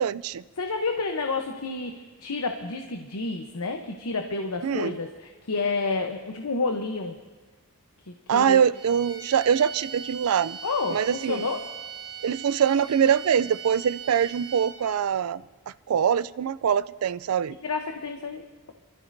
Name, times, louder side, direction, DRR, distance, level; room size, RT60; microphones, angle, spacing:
voice 1, 0.0-0.4 4.6-4.9 8.3-10.6 10.9-11.5 12.2-15.4 15.9-17.6, right 8 dB, 80° right, 17 dB, 0.4 m, -23 dB
voice 2, 0.6-7.2 8.1-8.6 10.6-11.7 17.6-18.7, left 3 dB, 90° left, 4 dB, 0.9 m, -30 dB
sound 1, 8.7-15.0, right 8 dB, 55° right, 5.6 m, -40 dB
26.5 x 13.5 x 2.7 m, 1.3 s
head